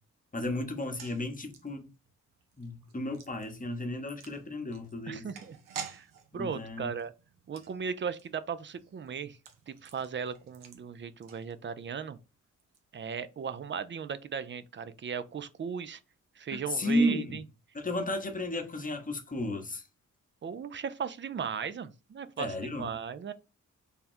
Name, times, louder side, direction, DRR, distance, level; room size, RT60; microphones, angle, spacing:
voice 1, 0.3-1.9 2.6-5.3 6.3-6.9 16.7-17.4 17.7-19.8 22.4-22.9, left 1 dB, 25° left, 0.9 m, -33 dB
sound 1, 0.7-12.0 12.2-12.3 12.6-12.8, right 7 dB, 90° right, 0.7 m, -50 dB
voice 2, 5.1-6.1 6.3-7.1 7.5-9.4 9.7-12.2 12.9-16.0 16.4-17.4 20.4-23.3, right 6 dB, 35° right, 0.4 m, -37 dB
3.5 x 2.2 x 4.2 m
cardioid pair, 70°, 32 cm